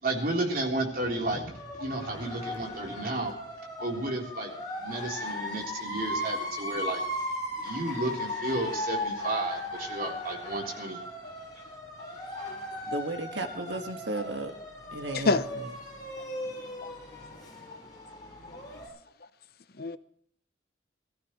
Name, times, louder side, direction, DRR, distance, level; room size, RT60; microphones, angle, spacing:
voice 1, 0.0-3.3 3.8-4.5 4.8-7.3 7.6-11.0, right 2 dB, 50° right, 3.7 m, -32 dB
sound 1, 1.5-18.9, left 1 dB, 20° left, 5.4 m, -37 dB
voice 2, 12.9-14.5 14.9-15.7, right 2 dB, 75° right, 1.8 m, -34 dB
voice 3, 15.1-15.5 16.8-16.9 19.8-20.0, left 3 dB, 55° left, 0.8 m, -27 dB
20.5 x 14.5 x 3.2 m
head